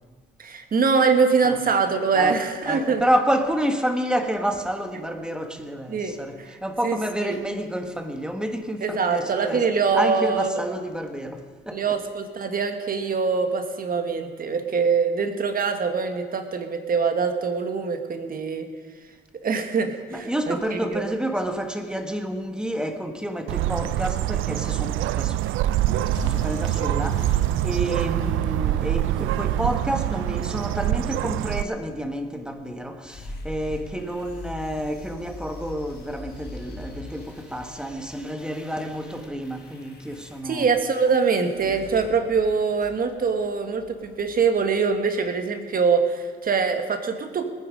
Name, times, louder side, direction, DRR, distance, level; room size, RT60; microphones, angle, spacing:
voice 1, 0.4-3.0 5.9-6.6 6.8-7.4 8.8-10.6 11.7-18.7 19.4-21.0 40.4-47.4, right 5 dB, 45° right, 1.5 m, -24 dB
voice 2, 2.6-12.0 20.1-40.7 41.6-41.7, equal, 5° right, 1.4 m, -29 dB
Bird, 23.5-31.6, right 14 dB, 85° right, 0.4 m, -25 dB
sound 1, 26.0-30.4, left 2 dB, 85° left, 3.4 m, -38 dB
sound 2, 33.1-43.0, left 2 dB, 55° left, 4.6 m, -42 dB
20.0 x 9.4 x 5.2 m
cardioid pair, 90°, 20 cm